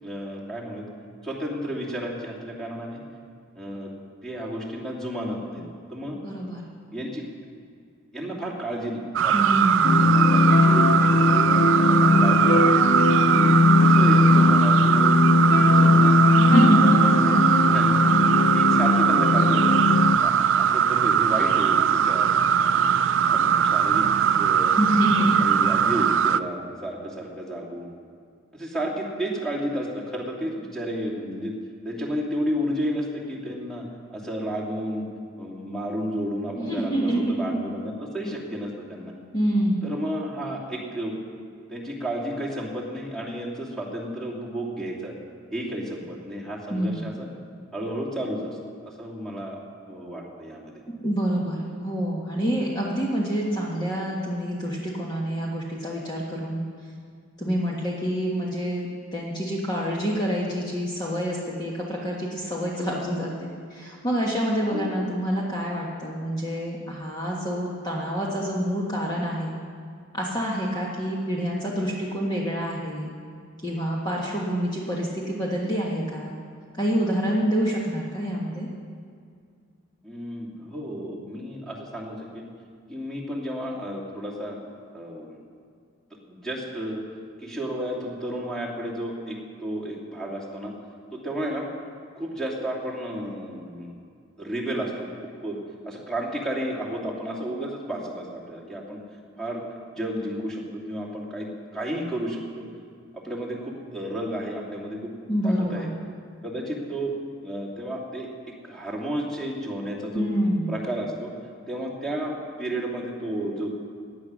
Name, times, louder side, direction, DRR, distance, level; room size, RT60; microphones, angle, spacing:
voice 1, 0.0-0.9 1.2-3.0 3.5-3.9 4.2-5.6 5.9-6.2 6.9-7.2 8.1-9.3 9.9-12.8 13.3-15.1 15.6-16.2 16.8-17.3 17.6-18.0 18.5-19.8 20.2-22.3 22.6-24.1 24.4-24.8 25.2-27.9 28.5-31.5 31.8-33.8 34.1-35.0 35.4-39.1 39.8-41.2 41.7-45.1 45.5-47.3 47.7-48.6 48.8-49.6 49.9-50.8 64.7-65.1 80.0-82.4 82.9-84.6 84.9-85.4 86.3-87.0 87.4-90.7 91.1-91.7 92.1-93.9 94.4-95.6 95.8-99.0 99.4-99.6 99.9-102.6 103.1-105.1 105.4-105.9 106.4-107.2 107.4-110.3 110.7-111.3 111.7-113.7, right 1 dB, ahead, -4 dB, 2.6 m, -32 dB
voice 2, 6.1-6.6 9.3-10.1 16.4-17.4 24.8-25.4 36.5-37.6 39.3-39.8 46.7-47.0 50.9-56.6 57.4-69.5 70.1-73.1 73.6-76.4 76.8-78.7 105.3-105.9 110.1-110.7, equal, 20° left, -4 dB, 1.4 m, -27 dB
sound 1, 9.2-26.4, right 8 dB, 65° right, 0.4 m, -21 dB
sound 2, 9.8-20.2, left 3 dB, 55° left, 0.5 m, -19 dB
16.0 x 9.6 x 6.2 m, 2.2 s
head